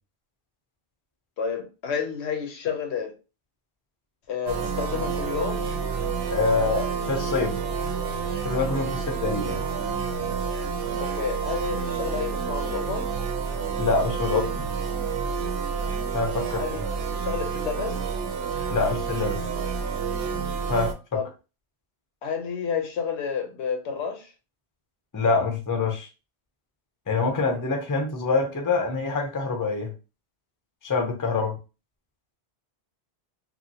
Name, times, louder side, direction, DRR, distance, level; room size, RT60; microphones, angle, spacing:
voice 1, 1.4-3.1 4.3-5.7 11.0-13.1 16.6-16.8 17.1-18.0 21.1-21.2 22.2-24.3, left 6 dB, 80° left, 1.0 m, -30 dB
sound 1, 4.5-20.9, right 5 dB, 70° right, 0.7 m, -29 dB
voice 2, 6.3-7.6 8.4-9.6 13.8-14.6 16.1-16.6 18.7-19.4 20.7-21.2 25.1-26.1 27.1-29.9 30.8-31.6, left 4 dB, 25° left, 0.5 m, -25 dB
2.9 x 2.5 x 2.7 m
omnidirectional pair, 1.1 m